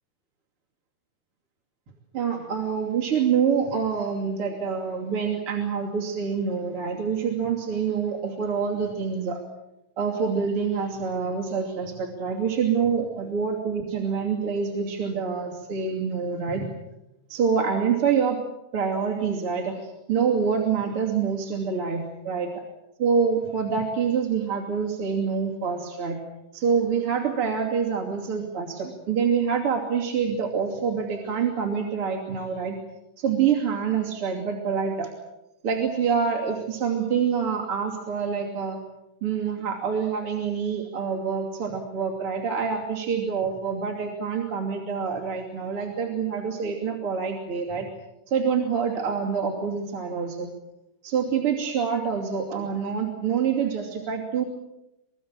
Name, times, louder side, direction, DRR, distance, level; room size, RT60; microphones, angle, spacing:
voice 1, 2.1-9.4 10.0-16.7 17.3-18.4 18.7-22.5 23.0-26.2 26.5-32.8 33.2-35.1 35.6-38.8 39.2-47.9 48.3-50.5 51.0-54.4, right 6 dB, 35° right, -1 dB, 2.7 m, -26 dB
25.5 x 23.0 x 7.5 m, 0.92 s
omnidirectional pair, 5.7 m